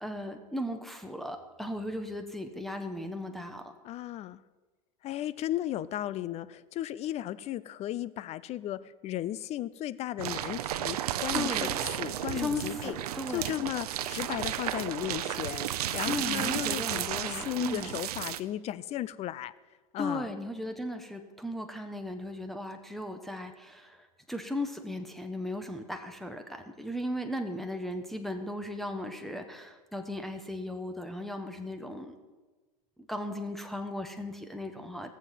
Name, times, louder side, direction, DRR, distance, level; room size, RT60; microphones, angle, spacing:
voice 1, 0.0-3.7 11.3-11.7 12.3-13.5 16.0-18.0 20.0-32.1 33.1-35.1, left 1 dB, ahead, 4 dB, 1.1 m, -36 dB
voice 2, 3.8-4.4 5.0-13.0 13.3-19.5 19.9-20.3, left 13 dB, 35° left, 17 dB, 0.5 m, -35 dB
sound 1, 10.2-18.4, right 12 dB, 80° right, 0.7 m, -33 dB
18.0 x 7.3 x 5.7 m, 1.3 s
supercardioid pair, 120°, 19 cm